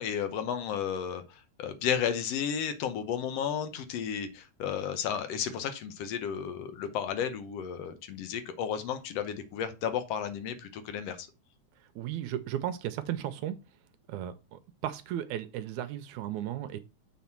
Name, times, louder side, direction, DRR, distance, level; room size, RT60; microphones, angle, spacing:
voice 1, 0.0-11.3, left 8 dB, 65° left, 1.8 m, -33 dB
voice 2, 12.0-13.6 14.1-16.8, right 11 dB, 80° right, 1.9 m, -35 dB
7.3 x 4.1 x 5.8 m
omnidirectional pair, 3.5 m